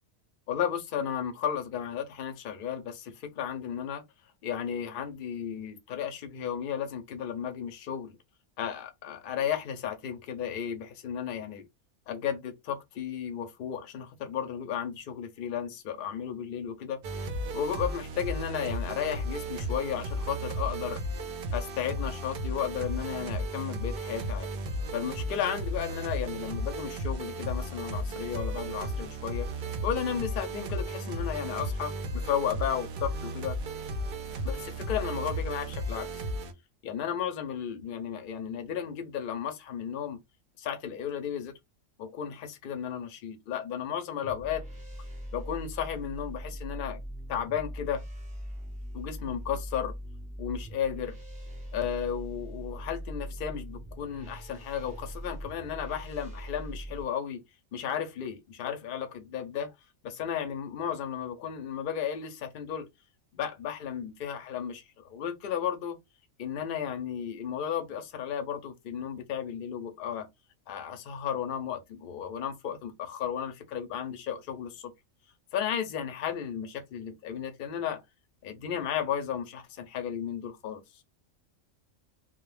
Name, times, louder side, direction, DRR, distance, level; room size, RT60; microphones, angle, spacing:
voice 1, 0.5-4.0 4.4-8.2 8.6-11.6 12.1-17.0 17.5-21.0 21.5-24.5 24.9-29.5 29.8-33.6 34.4-36.2 36.8-40.2 40.6-41.5 42.0-44.6 45.3-47.0 47.3-48.0 48.9-49.9 50.4-51.1 51.7-57.4 57.7-59.7 60.0-62.9 63.3-66.0 66.4-70.3 70.7-74.9 75.5-78.0 78.4-80.8, left 8 dB, 60° left, 0.6 m, -34 dB
sound 1, 17.0-36.5, right 1 dB, 65° right, 0.5 m, -34 dB
sound 2, 44.2-57.0, equal, 5° right, 0.8 m, -41 dB
2.2 x 2.1 x 3.1 m
omnidirectional pair, 1.4 m